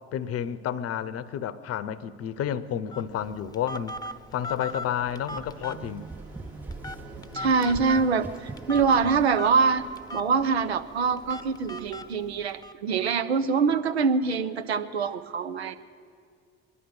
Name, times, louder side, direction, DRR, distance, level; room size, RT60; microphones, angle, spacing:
voice 1, 0.1-3.9 4.3-6.1, left 9 dB, 50° left, 0.8 m, -30 dB
Fixed-wing aircraft airplane, 1.7-11.9, right 4 dB, 70° right, 3.3 m, -48 dB
Telephone, 2.9-12.7, left 1 dB, 10° left, 0.8 m, -40 dB
sound 1, 5.1-9.4, right 3 dB, 5° right, 0.4 m, -43 dB
voice 2, 7.3-9.9 10.1-15.8, right 5 dB, 85° right, 0.6 m, -24 dB
22.5 x 11.0 x 5.7 m
figure-of-eight pair, 50°, 31 cm